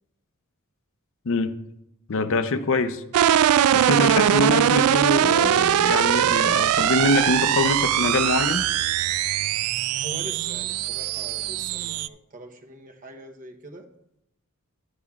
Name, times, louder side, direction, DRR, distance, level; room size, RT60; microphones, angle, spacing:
voice 1, 2.1-3.0 3.7-8.7, left 2 dB, 65° left, 10 dB, 0.6 m, -24 dB
sound 1, 3.1-12.1, right 11 dB, 85° right, 0.3 m, -21 dB
voice 2, 9.9-13.9, right 1 dB, 40° right, 4 dB, 0.9 m, -42 dB
11.5 x 10.0 x 2.4 m, 0.84 s
head